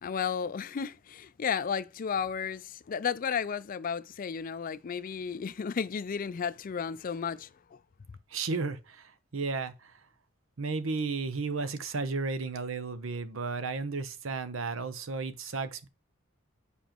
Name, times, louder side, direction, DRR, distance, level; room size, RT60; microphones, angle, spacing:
voice 1, 0.0-7.8, left 6 dB, 45° left, 0.4 m, -33 dB
voice 2, 8.3-10.0 10.6-15.9, right 4 dB, 75° right, 0.8 m, -33 dB
7.1 x 5.1 x 3.0 m
head